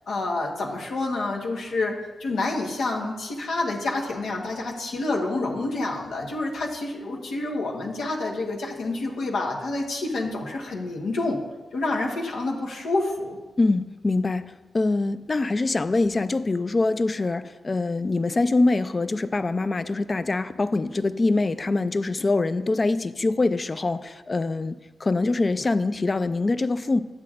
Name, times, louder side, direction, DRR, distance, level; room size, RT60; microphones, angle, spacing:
voice 1, 0.1-11.4 11.7-13.4, left 2 dB, 85° left, -2 dB, 1.2 m, -28 dB
voice 2, 13.6-14.4 14.7-27.0, left 3 dB, 35° left, 13 dB, 0.4 m, -24 dB
10.5 x 7.6 x 2.5 m, 1.2 s
cardioid pair, 70°, 0 cm